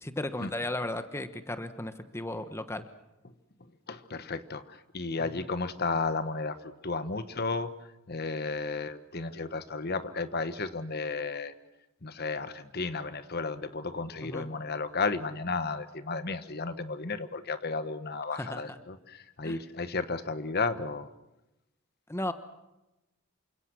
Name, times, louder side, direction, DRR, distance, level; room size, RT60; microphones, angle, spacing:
voice 1, 0.0-2.9 14.2-14.5 18.4-18.6 19.4-19.6 22.1-22.3, left 1 dB, 10° left, 10 dB, 1.1 m, -35 dB
voice 2, 3.6-11.5 12.0-21.1, left 3 dB, 50° left, 11 dB, 1.3 m, -33 dB
28.0 x 25.5 x 6.3 m, 0.95 s
head